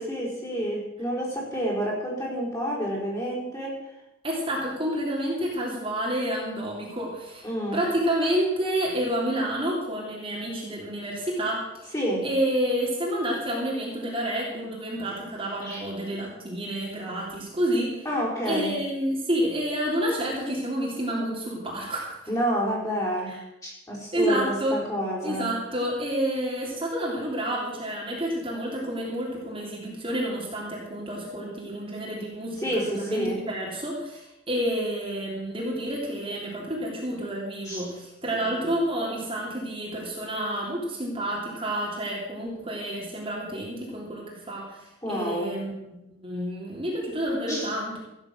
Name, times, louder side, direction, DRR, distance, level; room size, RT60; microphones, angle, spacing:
voice 1, 0.0-3.9 7.4-7.8 11.9-12.3 15.6-15.9 18.0-18.8 22.3-25.5 32.6-33.4 37.6-37.9 38.4-38.6 45.0-45.5 47.5-47.7, equal, 15° left, -5 dB, 4.8 m, -29 dB
voice 2, 4.2-11.9 12.2-18.0 18.4-22.2 23.3-23.4 24.1-24.8 25.2-32.6 32.8-44.8 45.1-48.0, right 1 dB, 25° right, -4 dB, 3.1 m, -29 dB
15.5 x 9.8 x 6.2 m, 0.90 s
head